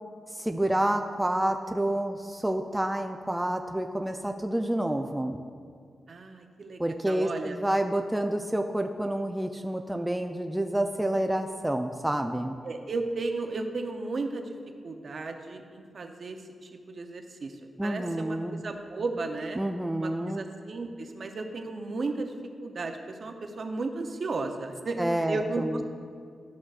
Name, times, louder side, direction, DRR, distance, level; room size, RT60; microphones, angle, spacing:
voice 1, 0.3-5.4 6.8-12.6 17.8-18.6 19.6-20.5 25.0-25.8, right 1 dB, 5° right, 4 dB, 0.3 m, -29 dB
voice 2, 6.1-7.6 12.6-14.5 14.8-19.6 20.0-22.3 22.6-25.8, right 3 dB, 55° right, 5 dB, 0.6 m, -34 dB
12.0 x 6.1 x 2.4 m, 2.2 s
cardioid pair, 95°, 0 cm